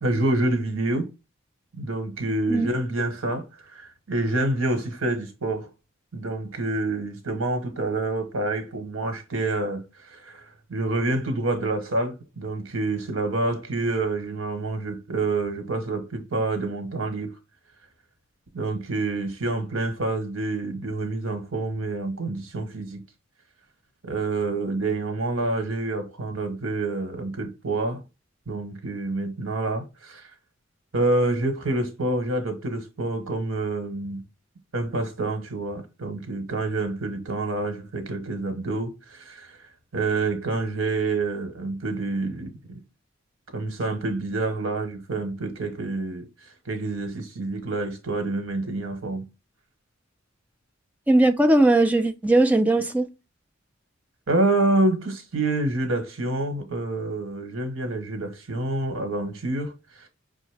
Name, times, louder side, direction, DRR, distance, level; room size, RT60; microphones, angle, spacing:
voice 1, 0.0-1.1 1.8-3.4 3.7-5.7 6.1-10.4 10.7-17.3 18.5-23.0 24.0-28.0 28.5-30.2 30.9-34.2 34.7-39.6 39.9-42.5 43.5-46.2 46.7-49.2 54.3-59.7 60.0-60.1, right 2 dB, 80° right, 1.1 m, -27 dB
voice 2, 51.1-53.1, right 2 dB, 5° right, 0.4 m, -19 dB
5.4 x 2.1 x 3.3 m
head